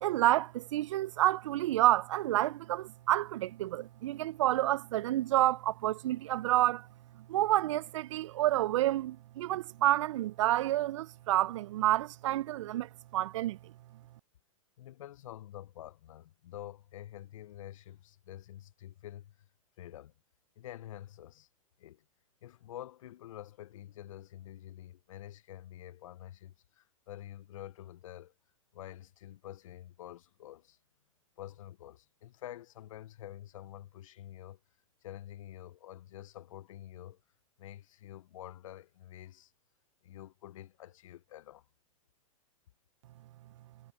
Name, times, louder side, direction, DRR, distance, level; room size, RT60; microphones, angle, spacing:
voice 1, 0.0-6.9 7.3-13.6, right 15 dB, 60° right, 0.4 m, -29 dB
voice 2, 14.8-19.3 19.8-20.1 20.6-21.5 21.8-22.0 22.4-28.3 28.7-30.8 31.4-34.6 35.0-37.2 37.6-39.5 40.0-41.6, left 12 dB, 70° left, 0.6 m, -48 dB
hypercardioid pair, 130°, 18 cm